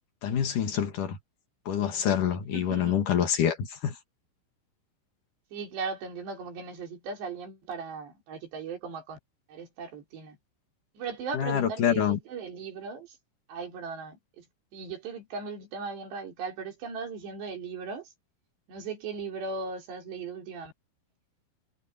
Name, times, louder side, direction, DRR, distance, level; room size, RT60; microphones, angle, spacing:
voice 1, 0.2-1.2 1.7-3.9 11.3-12.2, left 9 dB, 50° left, 2.8 m, -26 dB
voice 2, 2.5-3.0 5.5-9.2 9.5-10.4 11.0-13.2 13.5-14.5 14.7-18.1 18.7-20.7, right 4 dB, 60° right, 6.0 m, -38 dB
omnidirectional pair, 5.8 m